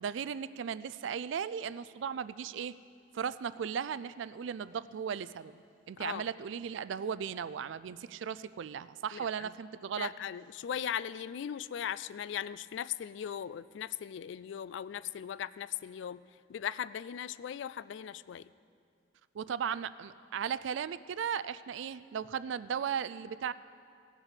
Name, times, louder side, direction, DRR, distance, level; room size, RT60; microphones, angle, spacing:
voice 1, 0.0-2.8 3.1-10.1 19.3-23.5, right 7 dB, 75° right, 16 dB, 0.3 m, -36 dB
voice 2, 9.1-9.5 10.0-16.2 16.5-18.5, left 9 dB, 70° left, 18 dB, 0.3 m, -38 dB
17.5 x 6.0 x 6.6 m, 2.3 s
head